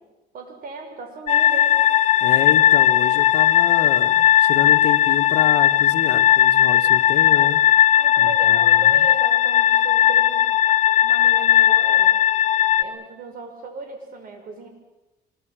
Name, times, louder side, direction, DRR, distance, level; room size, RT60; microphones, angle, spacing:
voice 1, 0.3-1.7 7.9-10.5 11.0-12.1 12.8-14.7, right 3 dB, 60° right, 5 dB, 6.5 m, -36 dB
sound 1, 1.3-12.8, left 11 dB, 45° left, 1.7 m, -17 dB
voice 2, 2.2-7.6 8.2-9.0, left 12 dB, 80° left, 6 dB, 1.5 m, -28 dB
25.5 x 22.0 x 7.6 m, 1.0 s
cardioid pair, 110°, 17 cm